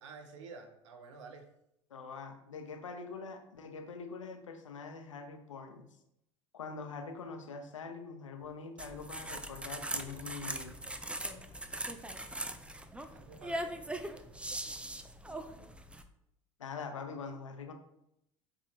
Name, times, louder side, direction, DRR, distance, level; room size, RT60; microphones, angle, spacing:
voice 1, 0.0-1.4 13.0-14.1, right 4 dB, 75° right, 5 dB, 1.3 m, -50 dB
voice 2, 1.9-5.9 6.5-10.8 16.6-17.7, left 4 dB, 90° left, 5 dB, 1.0 m, -44 dB
sound 1, 8.4-8.5 9.3-10.4 11.0-13.2 13.6-14.1 14.4-14.5, left 4 dB, 20° left, 1.1 m, -60 dB
sound 2, 8.8-16.0, right 1 dB, 5° right, 0.7 m, -40 dB
7.7 x 3.8 x 4.3 m, 0.81 s
hypercardioid pair, 75°, 16 cm